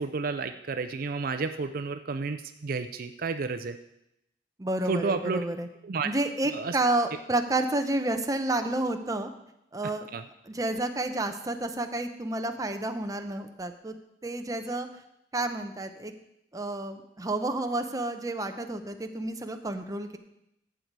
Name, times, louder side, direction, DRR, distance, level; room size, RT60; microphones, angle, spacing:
voice 1, 0.0-3.8 4.9-5.5 5.8-6.1 6.5-6.8 10.1-10.2, right 4 dB, 55° right, 9 dB, 0.5 m, -31 dB
voice 2, 4.6-5.7 6.0-9.3 9.7-10.1 10.5-13.9 14.2-14.9 15.3-16.1 16.5-20.2, right 2 dB, 20° right, 6 dB, 0.7 m, -30 dB
11.5 x 8.1 x 4.7 m, 0.83 s
head